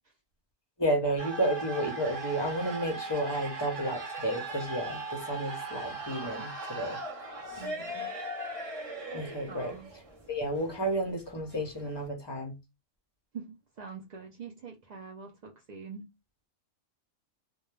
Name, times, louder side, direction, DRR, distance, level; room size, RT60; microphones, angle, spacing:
voice 1, 0.8-7.0 9.1-9.7 10.3-12.5, right 1 dB, 30° left, 0.5 m, -31 dB
sound 1, 1.2-12.1, right 2 dB, 35° right, 0.7 m, -39 dB
voice 2, 7.6-8.1 9.5-9.9 13.3-16.1, right 5 dB, 70° right, 0.4 m, -44 dB
2.2 x 2.1 x 3.0 m
omnidirectional pair, 1.3 m